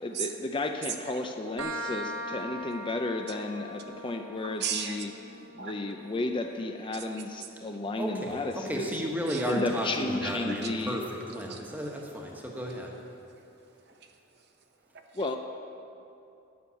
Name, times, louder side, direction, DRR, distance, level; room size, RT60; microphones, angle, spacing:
voice 1, 0.0-5.1 5.5-8.9 9.4-11.0 15.1-15.4, left 2 dB, 25° left, 5 dB, 0.4 m, -33 dB
sound 1, 1.6-9.0, equal, 80° right, 0.9 m, -42 dB
voice 2, 4.4-5.1 5.6-5.7 6.9-7.5 9.3-9.5 10.2-10.7 11.5-11.9 13.1-13.5 13.8-14.5 14.9-15.3, right 8 dB, 55° right, 4 dB, 0.8 m, -39 dB
voice 3, 8.0-13.0, equal, 10° right, 0 dB, 1.2 m, -33 dB
11.0 x 6.3 x 8.3 m, 2.7 s
head